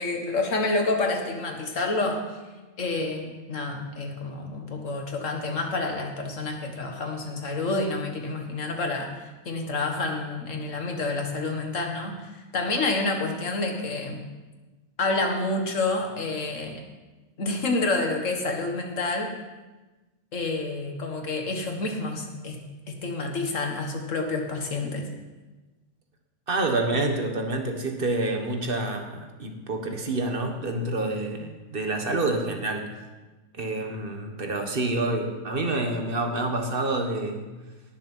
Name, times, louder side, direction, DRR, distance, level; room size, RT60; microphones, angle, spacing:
voice 1, 0.0-2.4 2.8-14.2 15.0-16.8 17.4-19.3 20.3-22.6 22.9-25.1, left 3 dB, 70° left, 3 dB, 2.0 m, -28 dB
voice 2, 26.5-32.9 33.5-37.5, right 2 dB, 45° right, 3 dB, 1.7 m, -28 dB
18.5 x 6.9 x 5.6 m, 1.2 s
omnidirectional pair, 1.4 m